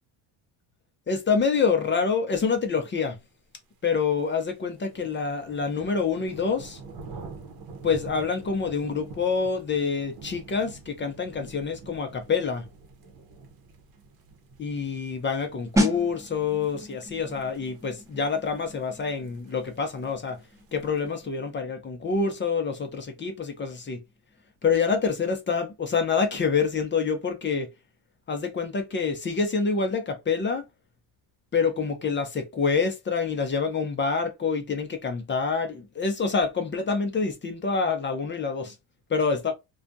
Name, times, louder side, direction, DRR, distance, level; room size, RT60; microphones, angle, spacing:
voice 1, 1.1-3.2 3.8-6.8 7.8-12.7 14.6-20.4 20.7-24.0 24.6-27.7 28.3-30.7 31.5-38.8 39.1-39.5, left 5 dB, 25° left, 0.6 m, -27 dB
sound 1, 3.7-21.3, right 4 dB, 50° right, 0.9 m, -47 dB
sound 2, 15.8-26.3 26.5-26.8, equal, 5° right, 0.8 m, -35 dB
2.4 x 2.3 x 2.6 m
cardioid pair, 110°, 46 cm